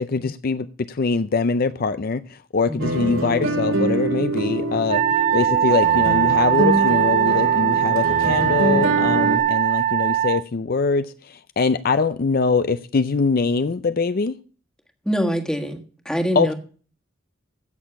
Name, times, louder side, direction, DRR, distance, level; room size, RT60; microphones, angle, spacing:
voice 1, 0.0-5.0 5.3-14.4 16.4-16.5, left 4 dB, 50° left, 0.5 m, -23 dB
sound 1, 2.8-9.4, right 1 dB, 80° right, 3.2 m, -24 dB
Wind instrument woodwind instrument, 4.9-10.4, right 11 dB, 35° right, 0.5 m, -20 dB
voice 2, 15.0-15.8 16.0-16.5, equal, 5° left, 1.5 m, -24 dB
15.5 x 6.6 x 5.8 m
head